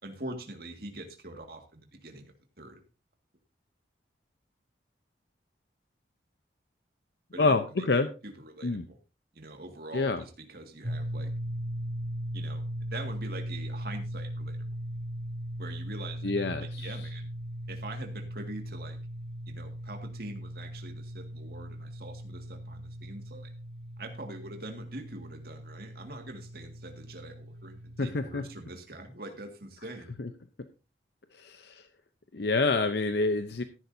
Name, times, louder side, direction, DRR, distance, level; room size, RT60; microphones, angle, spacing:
voice 1, 0.0-2.8 7.3-7.9 8.2-9.0 9.3-11.3 12.3-12.6 12.9-14.7 15.6-17.3 17.7-19.0 19.5-23.5 24.0-30.1, right 2 dB, 55° right, 4 dB, 2.0 m, -44 dB
voice 2, 7.4-8.1 8.6-8.9 9.9-10.2 16.2-16.9 28.0-28.4 30.2-30.3 31.3-31.9 32.3-33.6, left 3 dB, 60° left, 9 dB, 0.7 m, -27 dB
sound 1, 10.8-28.7, equal, 70° right, 3.3 m, -39 dB
14.0 x 11.0 x 2.7 m, 0.32 s
head